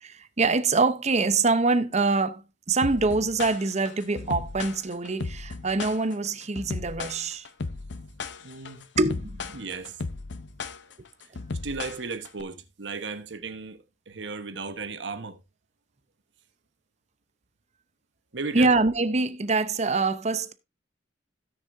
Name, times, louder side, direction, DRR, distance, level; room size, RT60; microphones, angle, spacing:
voice 1, 0.0-2.4 2.7-7.4 9.0-9.7 18.5-20.5, right 3 dB, 40° right, 0.8 m, -24 dB
sound 1, 2.8-12.4, left 3 dB, 75° left, 0.7 m, -35 dB
voice 2, 8.4-8.9 9.5-10.0 11.6-15.4 18.3-18.7, right 4 dB, 80° right, 1.2 m, -35 dB
17.0 x 6.4 x 2.6 m
head